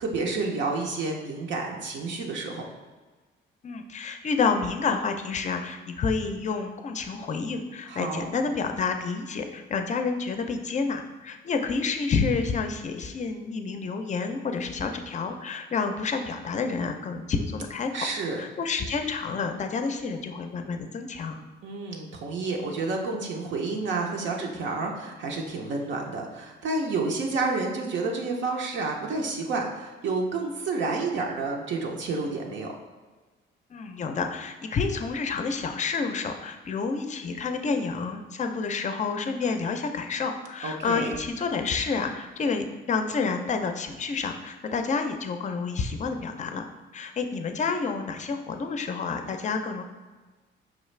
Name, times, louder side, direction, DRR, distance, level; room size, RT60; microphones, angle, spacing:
voice 1, 0.0-2.6 7.9-8.3 17.9-18.4 21.6-32.7 40.6-41.2, right 3 dB, 70° right, 0 dB, 0.6 m, -30 dB
voice 2, 3.6-18.0 18.4-21.4 33.7-46.7 46.9-49.8, left 4 dB, 35° left, 6 dB, 0.4 m, -29 dB
5.1 x 2.4 x 3.2 m, 1.3 s
cardioid pair, 90°, 20 cm